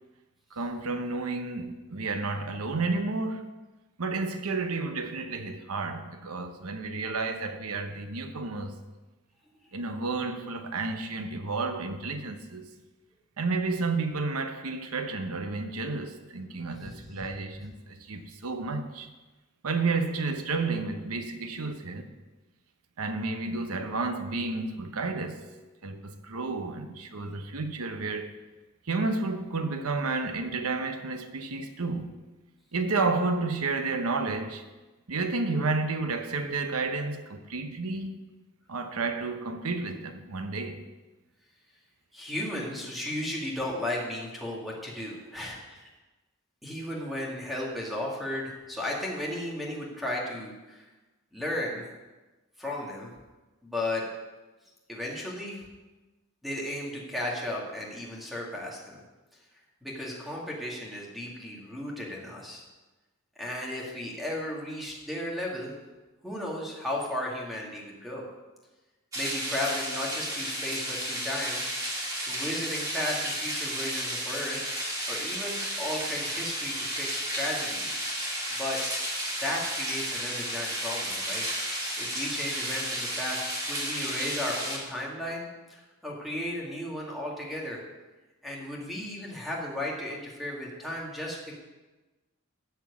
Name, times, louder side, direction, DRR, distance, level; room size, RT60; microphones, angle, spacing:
voice 1, 0.5-3.5 4.0-8.8 9.7-12.7 13.4-19.1 19.6-22.1 23.0-25.5 25.8-28.3 28.9-32.1 32.7-34.6 35.1-38.2 38.7-40.8, right 3 dB, 85° right, 1.0 m, -31 dB
voice 2, 42.1-45.9 46.6-50.9 51.3-51.9 52.6-53.1 53.6-54.1 54.9-55.6 56.4-59.0 59.8-62.6 63.4-65.7 66.2-68.2 69.1-71.6 72.3-78.0 78.5-78.8 79.4-87.8 88.4-91.5, left 1 dB, ahead, 2.1 m, -35 dB
sound 1, 69.1-84.8, right 1 dB, 15° right, 2.4 m, -32 dB
13.0 x 4.6 x 8.4 m
head